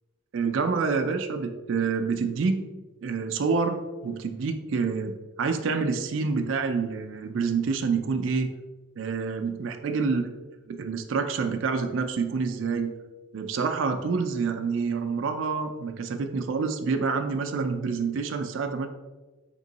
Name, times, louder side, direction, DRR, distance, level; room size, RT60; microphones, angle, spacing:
voice 1, 0.3-2.6 3.0-3.8 4.0-8.5 9.0-10.2 10.7-12.9 13.3-18.9, right 5 dB, 70° right, 6 dB, 0.4 m, -27 dB
3.6 x 3.0 x 3.8 m, 1.2 s
head